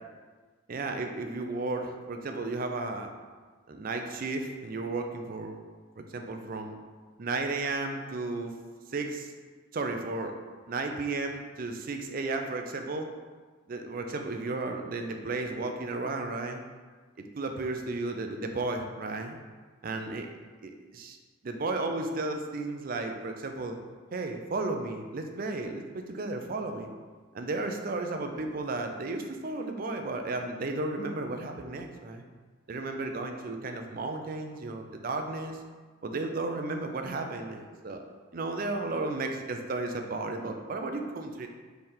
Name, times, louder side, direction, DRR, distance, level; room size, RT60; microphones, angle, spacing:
voice 1, 0.7-3.1 3.7-5.6 6.0-6.8 7.2-8.5 8.9-9.3 9.7-10.4 10.7-13.1 13.7-16.6 17.2-19.4 19.8-20.3 20.6-21.2 21.4-23.8 24.1-26.9 27.3-32.2 32.7-35.6 36.0-38.0 38.3-41.5, right 3 dB, 45° right, 4 dB, 0.4 m, -34 dB
3.7 x 3.3 x 4.3 m, 1.4 s
head